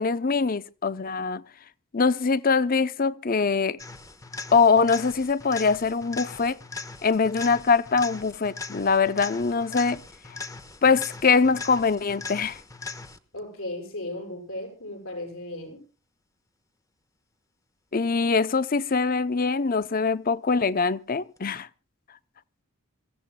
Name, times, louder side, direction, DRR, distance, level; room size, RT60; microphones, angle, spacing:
voice 1, 0.0-1.4 1.9-3.8 4.5-6.6 7.0-10.0 10.8-12.6 17.9-21.7, left 4 dB, 40° left, 0.6 m, -23 dB
sound 1, 3.8-13.4 21.4-21.5, left 4 dB, 15° left, 1.1 m, -40 dB
voice 2, 13.3-15.8, left 1 dB, 70° left, 7.7 m, -36 dB
26.5 x 16.0 x 2.2 m
head